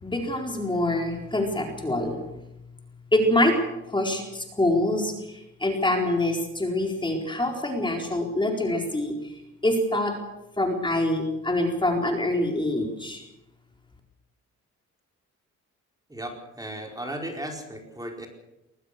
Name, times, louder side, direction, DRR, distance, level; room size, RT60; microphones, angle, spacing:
voice 1, 0.0-2.2 3.1-3.6 3.9-9.3 9.6-10.2 10.6-13.2, left 1 dB, 15° left, 2 dB, 4.3 m, -25 dB
voice 2, 16.1-18.3, right 1 dB, 10° right, 2 dB, 4.5 m, -36 dB
21.5 x 19.0 x 6.7 m, 0.92 s
cardioid pair, 90°, 30 cm